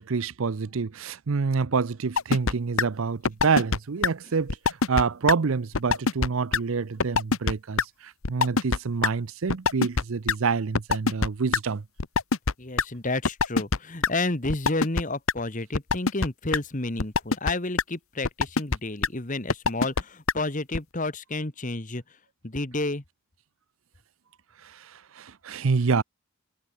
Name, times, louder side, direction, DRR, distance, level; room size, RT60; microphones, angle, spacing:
voice 1, 0.0-11.8 25.2-26.0, right 5 dB, 65° right, 0.6 m, -27 dB
sound 1, 2.2-2.5 2.8-2.9 3.2-3.8 4.0-4.1 4.5-5.0 5.3-5.4 5.7-6.3 6.5-6.6 7.0-7.5 7.8-7.9 8.2-8.8 9.0-9.1 9.5-10.0 10.3-10.4 10.7-11.6 12.0-12.8 13.2-13.8 14.0-14.1 14.5-15.0 15.3-15.4 15.7-16.3 16.5-16.6 17.0-17.5 17.8-17.9 18.2-18.8 19.0-19.1 19.5-20.0 20.3-20.4 20.7-20.8, left 4 dB, 70° left, 1.0 m, -22 dB
voice 2, 12.6-22.0 22.4-23.0, left 2 dB, 35° left, 1.5 m, -30 dB
head